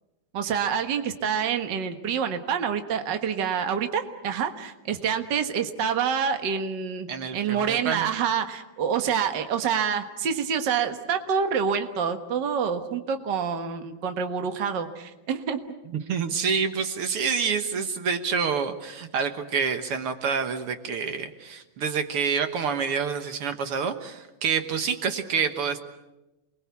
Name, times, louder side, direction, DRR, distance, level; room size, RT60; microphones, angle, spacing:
voice 1, 0.3-15.6, right 7 dB, 90° right, 7 dB, 0.9 m, -27 dB
voice 2, 7.1-8.0 15.9-25.8, right 6 dB, 65° right, 8 dB, 1.4 m, -27 dB
29.0 x 21.5 x 8.4 m, 1.0 s
omnidirectional pair, 4.3 m